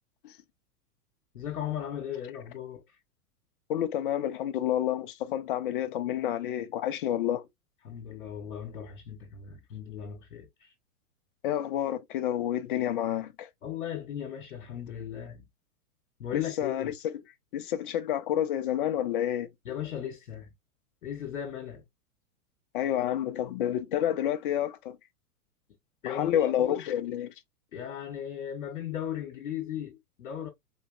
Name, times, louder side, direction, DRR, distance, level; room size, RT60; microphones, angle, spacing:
voice 1, 1.3-3.0 7.8-10.7 13.6-15.4 16.2-16.9 19.6-20.5 21.0-21.8 26.0-26.9 27.7-30.5, left 9 dB, 60° left, 1.1 m, -37 dB
voice 2, 3.7-7.5 11.4-13.5 16.3-17.1 17.5-19.5 22.7-25.0 26.0-27.3, left 11 dB, 35° left, 0.6 m, -29 dB
4.0 x 2.7 x 2.3 m
figure-of-eight pair, 105°, 45 cm